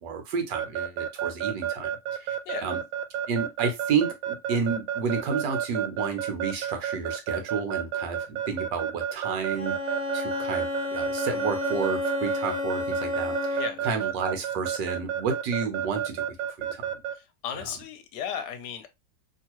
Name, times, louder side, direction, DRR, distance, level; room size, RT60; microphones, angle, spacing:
voice 1, 0.0-1.9 2.2-2.8 3.3-9.8 10.1-16.8, right 5 dB, 65° right, 1.4 m, -31 dB
Keyboard (musical) / Alarm, 0.5-17.1, right 9 dB, 90° right, 1.4 m, -30 dB
Bowed string instrument, 9.5-13.9, left 2 dB, 40° left, 1.3 m, -31 dB
voice 2, 13.6-13.9 17.1-18.9, left 8 dB, 70° left, 1.2 m, -35 dB
3.1 x 2.9 x 2.9 m
omnidirectional pair, 2.1 m